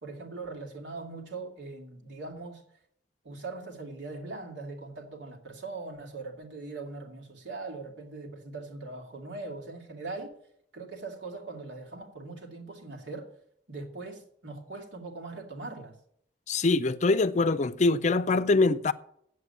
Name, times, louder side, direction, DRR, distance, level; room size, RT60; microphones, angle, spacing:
voice 1, 0.0-2.6 3.2-10.3 10.7-13.3 13.7-15.9, right 3 dB, 85° right, 2.5 m, -41 dB
voice 2, 16.5-18.9, left 3 dB, 40° left, 0.5 m, -24 dB
8.2 x 7.9 x 8.3 m
head